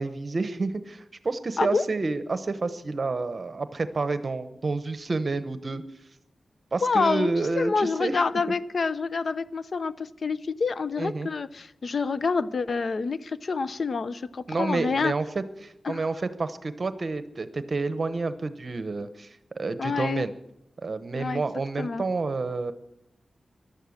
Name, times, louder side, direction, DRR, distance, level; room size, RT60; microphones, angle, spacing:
voice 1, 0.0-5.8 6.7-8.2 11.0-11.3 14.5-20.3 20.8-22.7, right 3 dB, 50° right, 11 dB, 0.9 m, -29 dB
voice 2, 6.8-7.3 7.6-15.1 15.8-16.0 19.8-20.3 21.1-21.4 21.8-22.0, left 4 dB, 60° left, 15 dB, 0.7 m, -27 dB
15.5 x 12.0 x 6.5 m, 0.85 s
cardioid pair, 65°, 0 cm